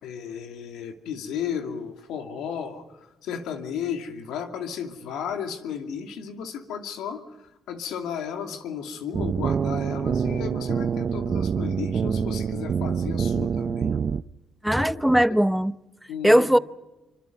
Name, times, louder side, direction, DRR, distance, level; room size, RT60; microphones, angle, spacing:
voice 1, 0.0-14.0 14.8-15.0 16.1-16.5, left 7 dB, 90° left, 2.5 m, -34 dB
sound 1, 9.1-14.2, right 7 dB, 50° right, 0.6 m, -26 dB
voice 2, 14.6-15.7 16.2-16.6, equal, 5° right, 0.8 m, -19 dB
26.0 x 25.0 x 5.3 m
cardioid pair, 90°, 0 cm